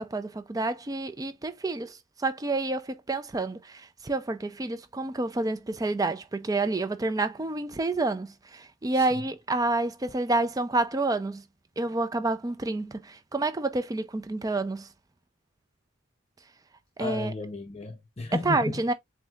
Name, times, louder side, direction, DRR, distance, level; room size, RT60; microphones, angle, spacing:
voice 1, 0.0-11.4 11.8-14.9 17.0-17.3 18.5-18.9, right 2 dB, 15° right, 0.4 m, -29 dB
voice 2, 8.9-9.3 17.0-18.8, left 2 dB, 30° left, 0.6 m, -34 dB
7.5 x 2.7 x 2.3 m
head